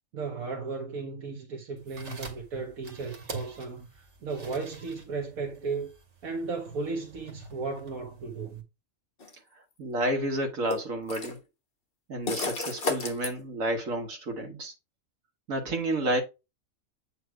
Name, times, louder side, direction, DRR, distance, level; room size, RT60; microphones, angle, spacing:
voice 1, 0.1-5.9 6.2-8.6, right 4 dB, 85° right, 1.7 m, -35 dB
sound 1, 1.8-8.6, right 3 dB, 55° right, 1.9 m, -45 dB
sound 2, 9.2-9.3 10.7-11.4 12.3-13.3, left 4 dB, 45° left, 1.5 m, -31 dB
voice 2, 9.8-11.4 12.1-14.7 15.5-16.2, right 1 dB, 70° right, 1.8 m, -30 dB
8.3 x 3.2 x 4.6 m
omnidirectional pair, 1.5 m